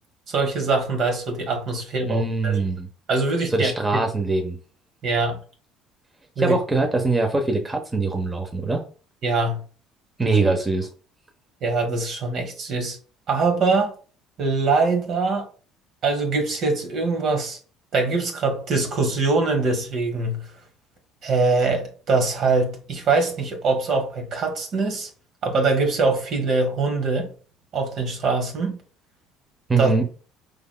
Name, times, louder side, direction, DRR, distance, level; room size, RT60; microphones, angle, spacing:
voice 1, 0.3-2.6 3.1-4.0 5.0-5.4 6.4-6.6 9.2-9.6 11.6-13.0 13.3-13.9 14.4-15.5 16.0-17.6 17.9-20.4 21.2-25.1 25.4-27.3 27.7-28.8 29.8-29.9, right 3 dB, 55° right, 1.3 m, -23 dB
voice 2, 2.1-2.9 3.5-4.6 6.4-8.8 10.2-10.9 29.7-30.0, right 3 dB, 20° right, 0.9 m, -22 dB
4.8 x 3.4 x 2.2 m
hypercardioid pair, 65°, 0 cm